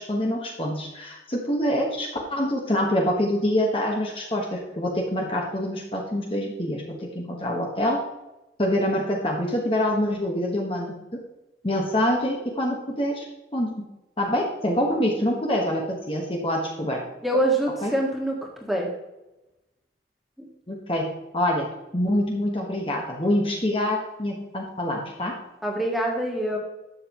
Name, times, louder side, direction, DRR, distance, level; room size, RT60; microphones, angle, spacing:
voice 1, 0.0-8.0 8.6-10.9 11.6-13.3 13.5-13.8 14.2-17.0 17.8-17.9 20.7-21.7 21.9-25.4, left 1 dB, 30° left, -1 dB, 1.4 m, -25 dB
voice 2, 17.2-18.4 18.7-18.9 20.4-20.5 25.6-26.6, right 1 dB, ahead, -1 dB, 1.8 m, -24 dB
12.0 x 7.6 x 3.0 m, 0.98 s
head